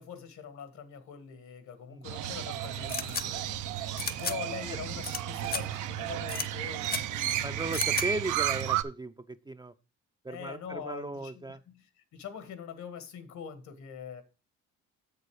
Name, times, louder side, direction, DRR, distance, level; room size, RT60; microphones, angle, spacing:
voice 1, 0.0-3.9 4.2-7.6 10.3-11.4 11.7-11.8 12.1-14.2, left 7 dB, 70° left, 1.7 m, -43 dB
Crow, 2.0-8.8, right 12 dB, 85° right, 0.7 m, -33 dB
sound 1, 2.9-3.2 4.0-4.4 5.0-5.2 5.4-5.6 6.3-6.5 6.8-7.0 7.7-8.1, left 5 dB, 30° left, 0.8 m, -33 dB
voice 2, 7.4-9.7 10.2-11.6, right 2 dB, 15° right, 0.5 m, -36 dB
7.5 x 6.8 x 4.8 m
cardioid pair, 90°, 30 cm